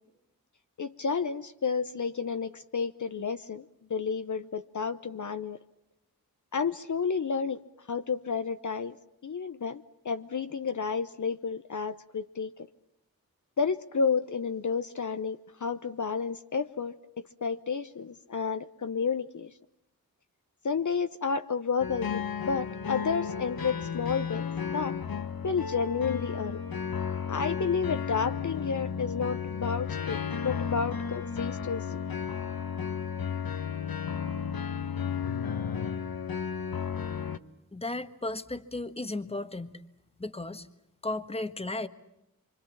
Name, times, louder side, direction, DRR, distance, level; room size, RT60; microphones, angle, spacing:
voice 1, 0.8-3.6 3.9-5.6 6.5-7.6 7.9-9.0 9.2-12.5 13.6-16.9 17.4-19.5 20.6-25.0 25.4-26.6 27.3-32.0, left 5 dB, 55° left, 10 dB, 0.9 m, -31 dB
sound 1, 21.8-37.4, left 7 dB, 75° left, 1.2 m, -33 dB
voice 2, 37.7-39.8 40.2-40.7 41.0-41.9, left 2 dB, 15° left, 11 dB, 1.4 m, -35 dB
26.5 x 25.0 x 7.3 m, 0.84 s
wide cardioid pair, 110°, 36 cm